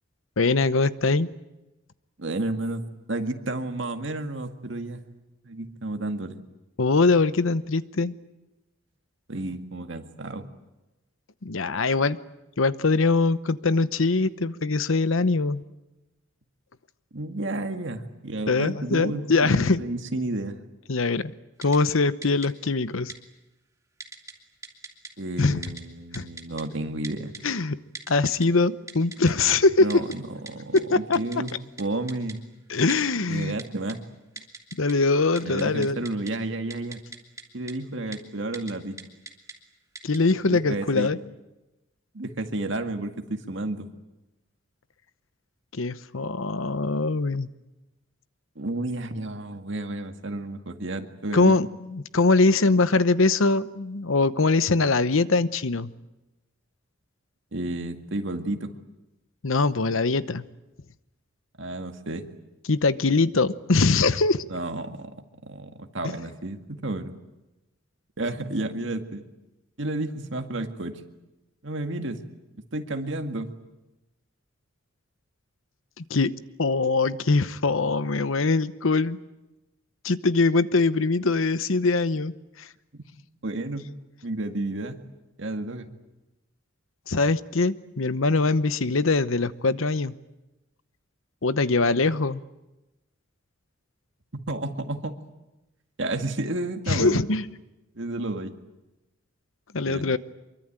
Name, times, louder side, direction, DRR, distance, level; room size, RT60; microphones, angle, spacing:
voice 1, 0.4-1.3 6.8-8.1 11.4-12.2 12.6-15.6 18.5-19.8 20.9-21.3 21.6-23.1 25.4-25.6 26.1-26.3 27.4-27.8 28.1-30.0 30.7-31.4 32.7-33.6 34.8-36.0 40.0-41.2 45.7-47.5 51.3-55.9 59.4-60.4 62.7-64.4 76.0-76.3 76.6-79.2 80.0-82.7 87.1-90.1 91.4-92.4 96.9-97.5 99.7-100.2, left 3 dB, 75° left, 14 dB, 0.9 m, -22 dB
voice 2, 2.2-5.0 5.4-6.4 9.3-10.5 17.1-20.6 25.2-27.3 29.8-31.5 31.8-32.4 33.3-34.0 35.4-37.0 37.5-39.0 40.5-41.1 42.1-43.9 48.6-51.6 57.5-58.7 61.6-62.3 64.5-65.1 65.4-67.1 68.2-69.2 69.8-71.0 71.6-72.2 72.7-73.5 82.9-83.0 83.4-83.9 84.2-85.0 85.4-85.9 94.5-95.1 96.0-97.2 97.9-98.5 99.8-100.0, right 2 dB, 60° right, 6 dB, 2.0 m, -31 dB
Typing, 21.6-21.8 22.2-22.5 23.1-23.2 24.0-24.3 24.6-25.1 25.6-25.8 26.1-26.6 27.0-27.4 27.9-28.5 28.9-29.5 29.9-30.2 30.5-30.6 30.8-30.9 31.1-31.5 31.8-31.9 32.1-32.3 32.9-33.0 33.6-33.9 34.4-34.9 35.2-36.3 36.7-37.4 37.7-37.8 38.1-38.2 38.5-38.7 39.0-39.5 39.9-40.2, right 4 dB, 15° right, 2.2 m, -39 dB
25.0 x 23.5 x 8.9 m, 1.0 s
head